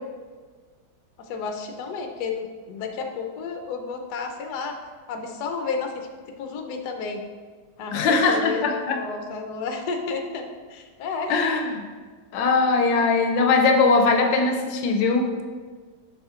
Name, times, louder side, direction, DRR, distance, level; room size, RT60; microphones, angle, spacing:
voice 1, 1.2-4.8 5.1-6.1 6.4-7.2 7.8-11.4, left 5 dB, 70° left, 3 dB, 1.1 m, -31 dB
voice 2, 7.9-9.0 11.3-11.9 12.3-15.3, left 4 dB, 90° left, 5 dB, 1.3 m, -20 dB
6.9 x 5.7 x 2.5 m, 1.5 s
omnidirectional pair, 2.0 m